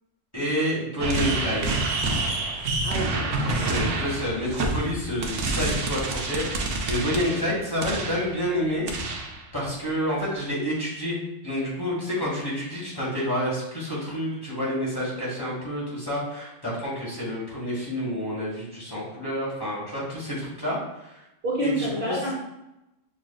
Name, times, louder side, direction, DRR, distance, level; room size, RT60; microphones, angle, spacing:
voice 1, 0.3-1.8 2.5-2.6 3.5-8.9 9.5-11.2 11.4-21.2 21.6-22.2, equal, 20° left, -7 dB, 1.3 m, -29 dB
sound 1, 1.0-8.3 8.9-9.4, right 2 dB, 80° right, 1.0 m, -28 dB
voice 2, 2.8-3.7 21.4-22.3, equal, 50° right, -5 dB, 1.0 m, -29 dB
5.9 x 2.5 x 2.2 m, 0.92 s
omnidirectional pair, 1.2 m